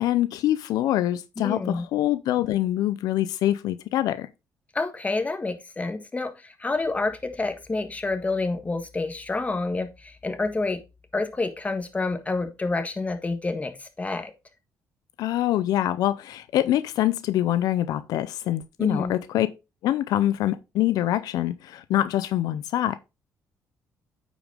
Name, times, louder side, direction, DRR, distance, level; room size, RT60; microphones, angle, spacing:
voice 1, 0.0-4.3 15.2-19.5 19.8-23.0, left 13 dB, 80° left, 0.6 m, -25 dB
voice 2, 1.4-1.8 4.7-10.8 11.1-14.3 18.8-19.1, left 3 dB, 20° left, 1.5 m, -28 dB
8.7 x 5.1 x 3.5 m
cardioid pair, 85°, 6 cm